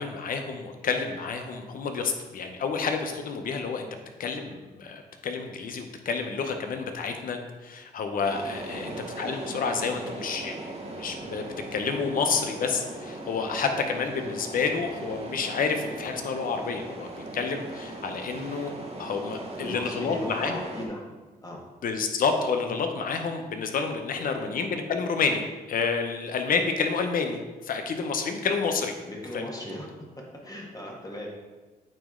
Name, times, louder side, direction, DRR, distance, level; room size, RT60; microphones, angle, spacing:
voice 1, 0.0-3.9 4.2-18.7 19.0-20.6 21.8-28.9 29.3-29.4, left 5 dB, 65° left, 5 dB, 0.8 m, -29 dB
sound 1, 8.2-20.9, right 2 dB, 40° right, 1.2 m, -39 dB
voice 2, 19.6-21.0 21.4-21.6 24.2-24.5 29.1-29.9 30.4-31.3, left 1 dB, 25° left, -2 dB, 1.5 m, -38 dB
8.9 x 3.1 x 3.7 m, 1.2 s
cardioid pair, 75°, 16 cm